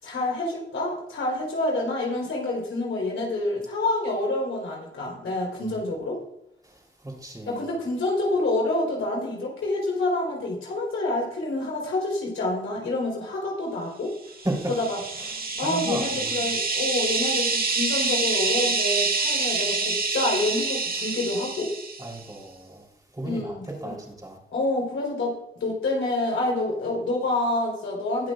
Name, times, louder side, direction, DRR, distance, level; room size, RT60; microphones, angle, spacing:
voice 1, 0.0-6.2 7.5-14.1 14.7-15.0 15.6-21.7 23.2-24.0 24.5-28.3, left 2 dB, 85° left, -2 dB, 4.2 m, -27 dB
voice 2, 7.0-7.6 14.4-14.7 15.4-16.5 22.0-22.8 23.1-24.4, right 1 dB, 20° right, -1 dB, 3.8 m, -33 dB
sound 1, 14.4-22.2, right 4 dB, 45° right, 1.7 m, -27 dB
21.0 x 7.7 x 2.5 m, 0.82 s
cardioid pair, 75°, 21 cm